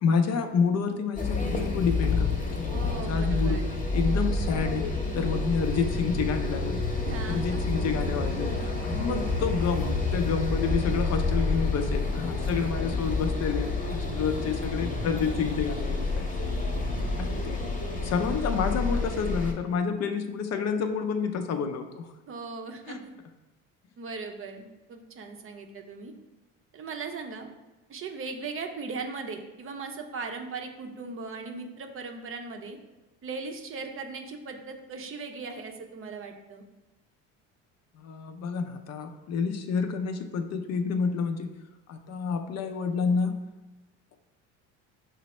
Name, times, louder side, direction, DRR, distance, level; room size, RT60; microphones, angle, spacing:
voice 1, 0.0-3.6 3.9-4.8 5.1-6.8 7.3-16.2 17.2-17.6 18.0-22.1 22.9-23.0 38.0-41.5 41.9-43.4, left 5 dB, 45° left, 7 dB, 0.5 m, -29 dB
sound 1, 1.2-19.5, left 3 dB, 20° left, 0.9 m, -29 dB
voice 2, 2.7-3.6 7.0-7.8 8.9-9.3 22.3-23.1 24.0-26.1 26.7-27.5 27.9-32.8 33.2-36.6, right 4 dB, 35° right, 4 dB, 0.6 m, -38 dB
5.3 x 2.0 x 4.2 m, 1.1 s
supercardioid pair, 85°, 36 cm